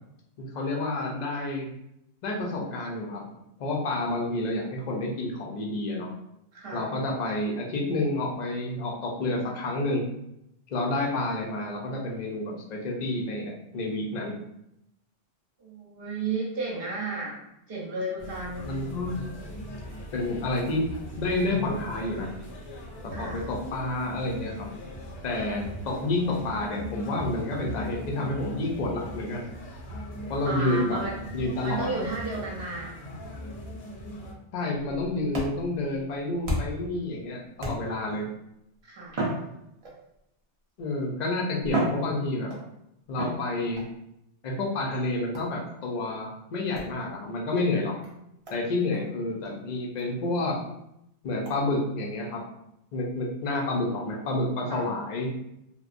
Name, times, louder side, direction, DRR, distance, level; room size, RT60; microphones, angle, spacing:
voice 1, 0.4-1.7 2.2-3.2 3.6-6.1 6.7-10.1 10.7-14.4 18.6-19.1 20.1-20.8 21.2-22.3 23.0-24.7 25.2-29.4 30.3-31.0 31.3-32.0 34.5-38.3 40.8-42.5 43.1-43.8 44.4-48.0 48.5-50.6 51.2-52.4 52.9-55.3, left 2 dB, 50° left, -1 dB, 0.5 m, -29 dB
voice 2, 6.5-6.9 15.6-17.3 17.7-18.8 23.1-23.5 30.4-31.2 31.6-33.0 38.8-39.2 54.7-54.8, right 3 dB, 60° right, -4 dB, 0.9 m, -33 dB
sound 1, 18.2-34.3, equal, 75° left, 1.0 m, -40 dB
sound 2, 34.8-36.9 37.6-38.2 39.1-40.2 41.0-41.1 41.6-42.7 43.2-43.9 45.3-45.6 46.7-46.9 47.6-47.7 48.0-48.1 48.5-48.6 48.9-49.0 49.4-49.5 50.0-50.1 50.5-50.6 51.4-51.6, right 1 dB, 40° right, 0.5 m, -33 dB
2.8 x 2.0 x 2.5 m, 0.82 s
omnidirectional pair, 1.2 m